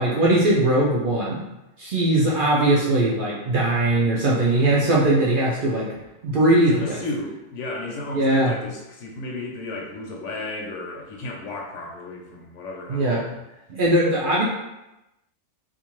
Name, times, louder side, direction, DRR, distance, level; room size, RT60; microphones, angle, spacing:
voice 1, 0.0-1.4 1.8-5.9 6.2-6.8 8.1-8.5 12.9-13.2 13.7-14.4, right 1 dB, 60° right, -5 dB, 0.5 m, -20 dB
voice 2, 6.6-13.3, left 2 dB, 80° left, -1 dB, 0.9 m, -33 dB
2.6 x 2.4 x 3.0 m, 0.94 s
omnidirectional pair, 1.3 m